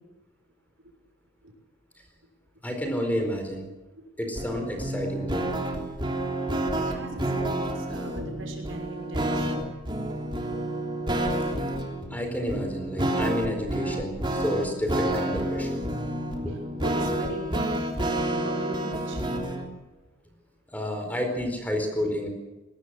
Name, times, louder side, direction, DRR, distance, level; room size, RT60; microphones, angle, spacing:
voice 1, 2.6-3.7 4.2-5.5 12.1-15.8 16.4-16.5 20.7-22.3, equal, 10° left, 4 dB, 4.5 m, -30 dB
sound 1, 4.4-19.7, right 1 dB, 25° right, 3.3 m, -29 dB
voice 2, 6.4-9.7 11.5-11.7 16.0-19.2, right 1 dB, 80° right, 2 dB, 6.0 m, -39 dB
23.0 x 18.5 x 7.8 m, 1.1 s
head